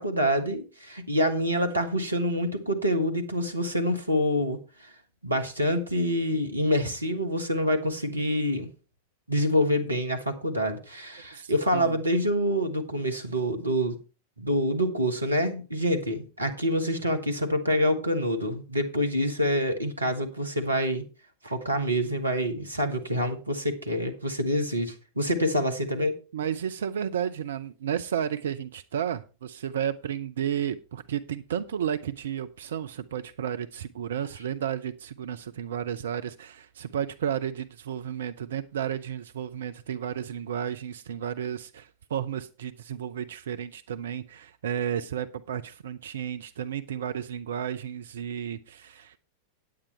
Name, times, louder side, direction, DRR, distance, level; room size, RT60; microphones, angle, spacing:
voice 1, 0.0-4.9 5.2-8.7 9.3-14.0 14.4-21.0 21.4-26.2, equal, 80° right, 1.5 m, -26 dB
voice 2, 11.3-12.0 26.3-49.2, right 9 dB, 65° right, 0.5 m, -32 dB
9.4 x 8.8 x 4.4 m
figure-of-eight pair, 90°, 0 cm